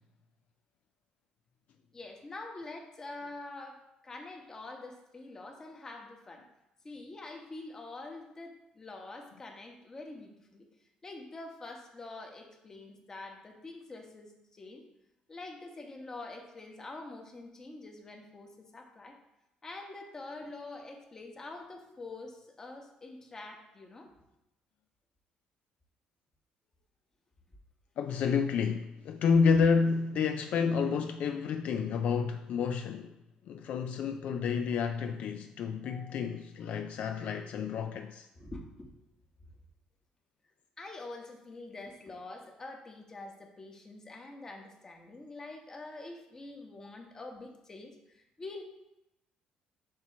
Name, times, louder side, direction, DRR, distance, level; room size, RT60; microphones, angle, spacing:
voice 1, 1.9-6.5 6.8-10.7 11.0-14.8 15.3-19.2 19.6-24.1 35.8-36.2 38.4-38.9 40.8-48.6, left 2 dB, 25° left, 1.1 m, -46 dB
voice 2, 28.0-33.2 33.5-38.3, left 5 dB, 60° left, 0.4 m, -29 dB
7.5 x 3.0 x 5.8 m
cardioid pair, 120°, 2 cm